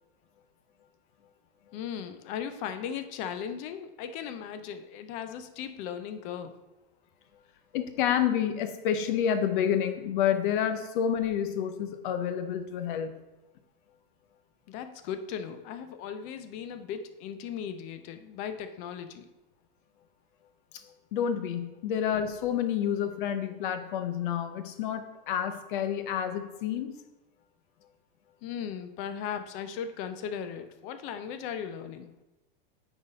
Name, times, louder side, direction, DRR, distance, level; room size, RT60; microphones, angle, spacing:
voice 1, 1.7-6.5 14.7-19.3 28.4-32.1, left 8 dB, 25° left, 9 dB, 0.4 m, -37 dB
voice 2, 7.7-13.1 21.1-26.9, left 9 dB, 60° left, 9 dB, 0.8 m, -29 dB
9.0 x 4.0 x 4.0 m, 1.1 s
supercardioid pair, 160°, 29 cm